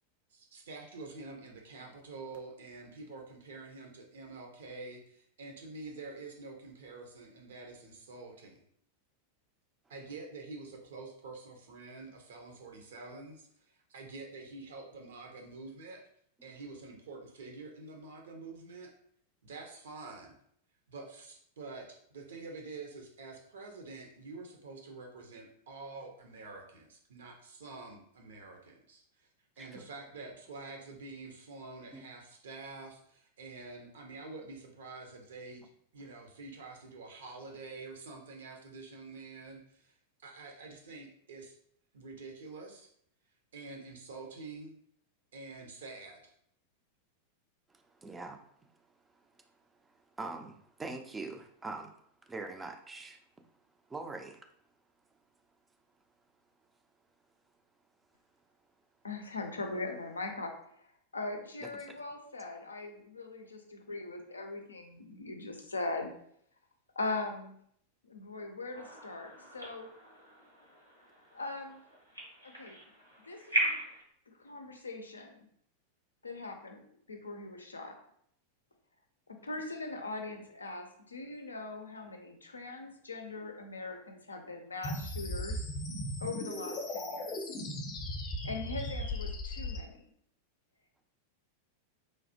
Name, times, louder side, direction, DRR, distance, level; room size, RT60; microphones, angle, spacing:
voice 1, 0.3-8.6 9.9-16.0 16.4-18.9 19.4-20.3 20.9-29.3 29.6-39.9 40.2-41.6 41.9-42.9 43.5-44.7 45.3-46.3, right 3 dB, 60° right, 2 dB, 0.6 m, -47 dB
voice 2, 47.7-48.4 49.1-51.9 52.3-53.2 53.9-54.4 61.9-62.0, right 3 dB, 10° right, 5 dB, 0.4 m, -44 dB
voice 3, 59.0-60.9 61.1-66.1 67.0-67.6 68.0-69.9 71.3-71.8 72.4-72.8 73.2-73.8 74.3-75.5 76.2-77.9 79.4-85.7 86.2-87.4 88.4-90.0, left 3 dB, 75° left, 4 dB, 0.4 m, -40 dB
sound 1, 68.7-74.0, right 1 dB, 90° right, 0.9 m, -38 dB
sound 2, 84.8-89.8, left 1 dB, 30° left, 0.6 m, -37 dB
3.1 x 2.3 x 2.7 m, 0.67 s
figure-of-eight pair, 90°, 0 cm